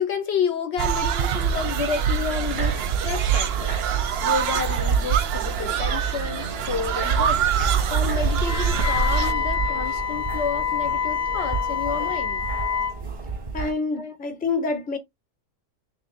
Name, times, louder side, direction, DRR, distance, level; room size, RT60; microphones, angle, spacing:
voice 1, 0.0-3.8 4.2-7.5 7.9-12.5 13.9-14.2, left 6 dB, 65° left, 0.8 m, -30 dB
sound 1, 0.8-9.3, right 8 dB, 60° right, 0.7 m, -24 dB
sound 2, 2.5-13.7, right 4 dB, 30° right, 0.7 m, -32 dB
Wind instrument woodwind instrument, 8.4-13.0, left 7 dB, 85° left, 1.0 m, -27 dB
voice 2, 13.5-15.0, left 4 dB, 10° left, 0.5 m, -27 dB
3.3 x 2.6 x 4.0 m
omnidirectional pair, 1.3 m